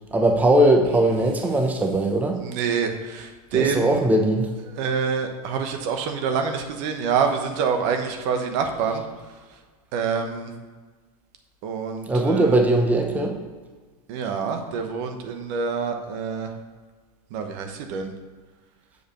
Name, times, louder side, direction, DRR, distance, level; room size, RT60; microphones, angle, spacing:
voice 1, 0.1-2.4 3.5-4.5 12.1-13.4, right 1 dB, 10° right, 3 dB, 0.8 m, -20 dB
voice 2, 2.4-4.0 4.7-9.0 9.9-10.5 11.6-12.6 14.1-16.5 17.3-18.1, right 6 dB, 55° right, 6 dB, 1.1 m, -26 dB
6.7 x 5.0 x 6.7 m, 1.4 s
hypercardioid pair, 115°, 20 cm